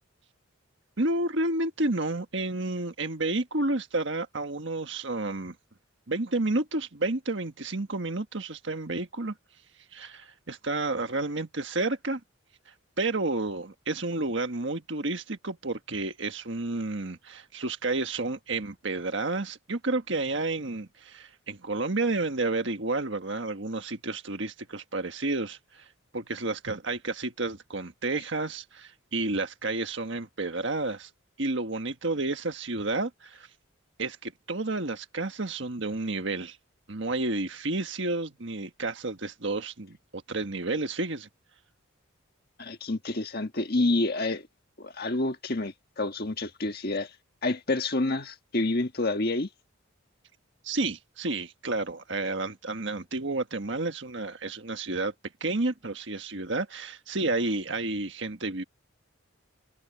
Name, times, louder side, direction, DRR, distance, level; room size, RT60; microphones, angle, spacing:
voice 1, 1.0-5.5 6.1-9.3 9.9-12.2 12.7-25.9 26.1-31.1 31.4-33.5 34.0-36.6 36.9-41.3 50.6-55.1 55.4-58.6, right 2 dB, 55° right, 1.6 m, -31 dB
voice 2, 42.6-44.5 44.8-47.1 47.4-49.5, left 2 dB, 45° left, 1.5 m, -28 dB
head